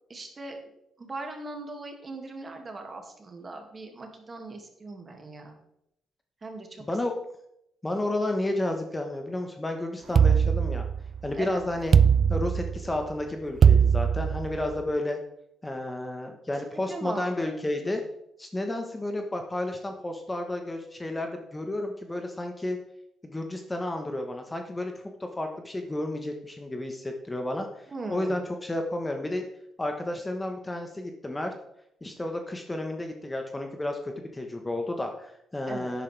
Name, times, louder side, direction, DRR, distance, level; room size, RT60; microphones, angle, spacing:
voice 1, 0.1-0.6 1.0-5.6 6.4-6.8 11.4-11.6 16.9-17.5 17.8-18.0 27.9-28.4 35.6-35.9, right 2 dB, 30° right, 3 dB, 2.3 m, -39 dB
voice 2, 6.8-7.1 7.8-10.8 11.2-12.0 12.3-15.2 15.6-18.0 18.4-22.8 23.2-24.9 25.2-27.7 28.1-29.5 29.8-31.5 32.0-36.0, left 1 dB, 15° left, 4 dB, 1.2 m, -31 dB
sound 1, 10.2-11.3 11.9-13.0 13.6-14.7, right 7 dB, 50° right, 0.4 m, -20 dB
10.5 x 9.3 x 3.4 m, 0.78 s
cardioid pair, 90°, 0 cm